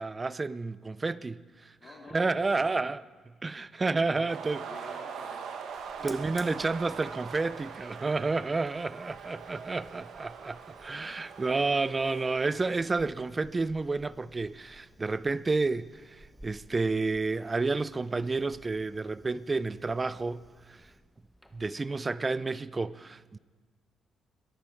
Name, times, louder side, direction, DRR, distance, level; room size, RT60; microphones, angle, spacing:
voice 1, 0.0-1.4 2.1-3.0 3.4-4.6 6.0-20.4 20.7-20.8 21.5-23.4, right 3 dB, 25° right, 0.5 m, -30 dB
voice 2, 1.8-2.8 4.2-5.5 6.0-6.4 9.2-9.8, left 3 dB, 50° left, 2.6 m, -51 dB
sound 1, 4.3-12.8, right 6 dB, 75° right, 1.5 m, -42 dB
Fire, 5.7-21.8, equal, ahead, 1.2 m, -57 dB
21.5 x 11.5 x 4.6 m
cardioid pair, 90°, 0 cm